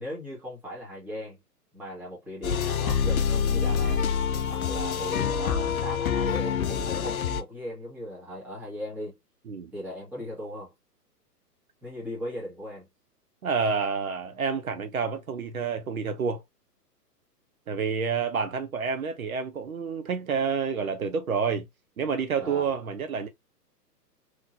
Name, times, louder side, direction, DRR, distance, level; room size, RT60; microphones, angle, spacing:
voice 1, 0.0-1.4 1.7-4.0 4.5-9.2 9.7-10.7 11.8-12.9 22.4-22.7, equal, 5° right, 1.6 m, -38 dB
sound 1, 2.4-7.4, left 7 dB, 60° left, 0.6 m, -26 dB
voice 2, 13.4-16.4 17.7-21.7 22.0-23.3, right 5 dB, 60° right, 0.8 m, -29 dB
3.5 x 3.2 x 2.7 m
figure-of-eight pair, 120°, 48 cm